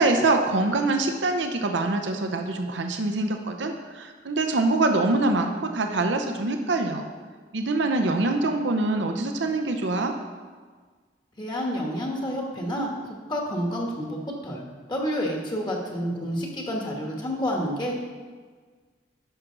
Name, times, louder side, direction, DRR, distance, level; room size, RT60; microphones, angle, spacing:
voice 1, 0.0-7.0 7.5-10.1, right 2 dB, 85° right, 5 dB, 0.7 m, -24 dB
voice 2, 11.4-14.6 14.9-17.9, equal, 25° left, -1 dB, 1.3 m, -29 dB
11.0 x 6.1 x 3.8 m, 1.5 s
head